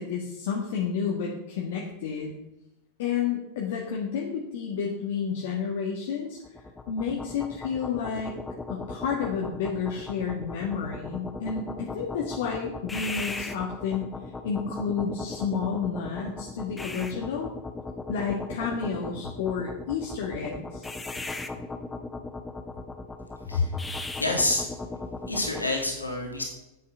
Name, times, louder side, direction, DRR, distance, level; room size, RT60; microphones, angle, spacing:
voice 1, 0.0-2.3 3.0-6.4 6.9-8.4 8.7-14.0 14.4-17.5 18.1-20.9 23.5-23.7, left 6 dB, 55° left, -1 dB, 1.7 m, -30 dB
sound 1, 6.4-25.7, left 3 dB, 10° left, 0.9 m, -38 dB
voice 2, 24.2-24.7 25.3-26.4, left 2 dB, 80° left, 1 dB, 2.4 m, -27 dB
9.9 x 8.6 x 5.6 m, 0.93 s
figure-of-eight pair, 90°, 0 cm